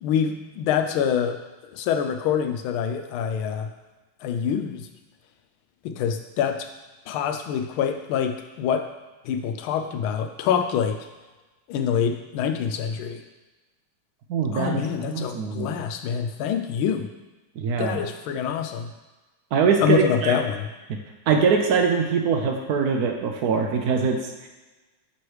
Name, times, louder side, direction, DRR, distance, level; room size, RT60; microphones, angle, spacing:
voice 1, 0.0-1.4 1.7-3.7 4.2-4.9 5.8-6.7 7.1-8.9 9.2-11.0 11.7-13.2 14.5-17.1 17.8-18.9 19.8-20.7, left 8 dB, 85° left, 6 dB, 1.4 m, -25 dB
voice 2, 14.3-15.7 17.6-18.0 19.5-20.4 21.3-24.5, right 5 dB, 70° right, 3 dB, 0.9 m, -23 dB
7.1 x 3.1 x 4.7 m, 1.2 s
omnidirectional pair, 2.2 m